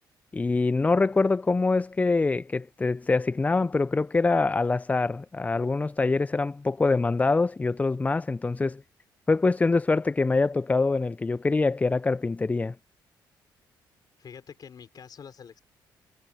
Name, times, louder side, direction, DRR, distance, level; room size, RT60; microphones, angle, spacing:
voice 1, 0.3-8.8 9.3-12.7, left 3 dB, 20° left, 0.3 m, -24 dB
voice 2, 14.2-15.6, left 7 dB, 55° left, 4.8 m, -46 dB
cardioid pair, 70°, 8 cm